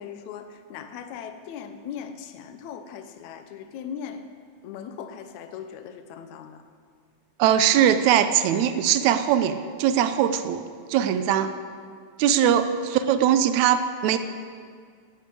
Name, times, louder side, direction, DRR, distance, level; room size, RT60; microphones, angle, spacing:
voice 1, 0.0-4.2 4.6-6.6 12.4-12.6, left 7 dB, 70° left, 8 dB, 2.0 m, -38 dB
voice 2, 7.4-10.6 10.9-11.5 12.2-12.7 12.9-14.2, right 10 dB, 85° right, 10 dB, 1.7 m, -21 dB
11.5 x 9.6 x 8.5 m, 2.1 s
omnidirectional pair, 3.9 m